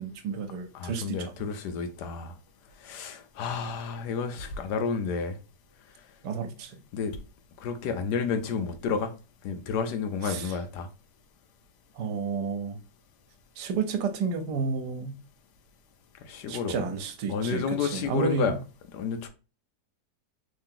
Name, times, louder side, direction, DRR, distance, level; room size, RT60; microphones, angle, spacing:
voice 1, 0.0-1.3 6.2-6.8 10.2-10.5 12.0-12.8 13.6-15.1 16.5-18.5, right 5 dB, 75° right, 1.2 m, -31 dB
voice 2, 0.7-2.3 2.8-5.4 6.9-7.2 7.6-9.1 9.4-10.9 16.2-16.9 17.3-18.6 18.9-19.3, left 5 dB, 80° left, 1.2 m, -31 dB
3.4 x 2.8 x 3.6 m
omnidirectional pair, 1.8 m